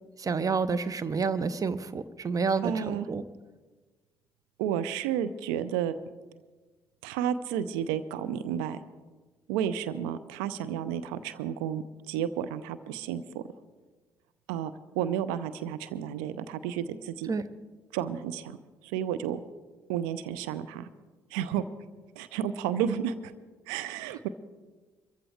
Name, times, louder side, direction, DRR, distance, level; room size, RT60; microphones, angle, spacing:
voice 1, 0.2-3.2 17.3-17.4, right 5 dB, 35° right, 15 dB, 0.8 m, -29 dB
voice 2, 2.6-3.1 4.6-5.9 7.0-8.8 9.5-13.4 14.5-17.3 17.9-18.6 18.8-19.4 19.9-20.9 21.3-21.6 22.2-23.1 23.7-24.3, right 9 dB, 70° right, 13 dB, 0.6 m, -31 dB
22.5 x 14.5 x 3.4 m, 1.3 s
figure-of-eight pair, 45°, 11 cm